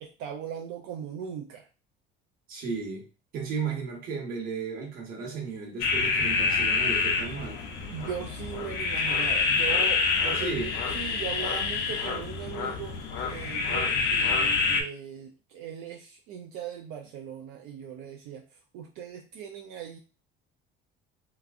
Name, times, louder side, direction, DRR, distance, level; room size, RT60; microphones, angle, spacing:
voice 1, 0.0-1.7 7.9-13.0 13.3-18.5 18.7-20.0, right 8 dB, 75° right, 2 dB, 0.5 m, -39 dB
voice 2, 2.5-3.0 3.3-7.6 10.3-10.8, right 5 dB, 45° right, 1 dB, 1.1 m, -34 dB
sound 1, 5.8-14.8, left 4 dB, 60° left, 0.7 m, -27 dB
3.4 x 2.9 x 2.4 m, 0.33 s
cardioid pair, 160°, 21 cm